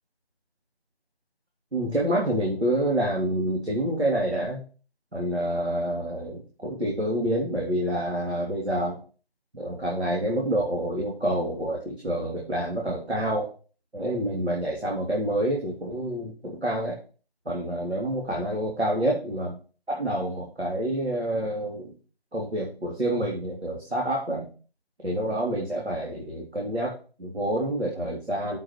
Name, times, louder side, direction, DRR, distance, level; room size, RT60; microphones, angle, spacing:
voice 1, 1.7-4.6 5.1-9.0 9.5-13.5 13.9-17.0 17.4-19.5 19.9-21.9 22.3-24.5 25.0-28.6, right 1 dB, 85° right, -3 dB, 3.3 m, -27 dB
7.8 x 5.3 x 6.6 m, 0.37 s
figure-of-eight pair, 165°, 31 cm